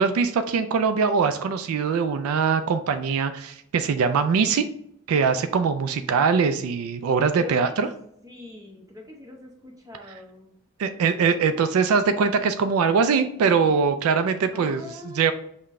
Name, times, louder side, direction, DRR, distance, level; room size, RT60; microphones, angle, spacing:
voice 1, 0.0-4.7 5.1-7.9 10.8-14.8 15.1-15.3, right 5 dB, 80° right, 9 dB, 0.3 m, -22 dB
voice 2, 7.4-7.8 8.2-10.5 14.5-15.3, left 2 dB, 15° right, 0 dB, 0.8 m, -42 dB
5.7 x 2.1 x 3.6 m, 0.72 s
head